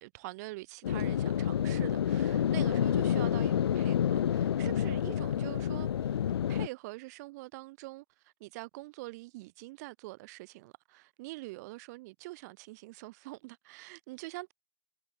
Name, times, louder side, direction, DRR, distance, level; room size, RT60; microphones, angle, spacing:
voice 1, 0.0-6.2 6.5-14.5, right 22 dB, 35° right, 0.9 m, -45 dB
sound 1, 0.8-6.7, left 9 dB, 60° left, 0.4 m, -29 dB
figure-of-eight pair, 120°, 15 cm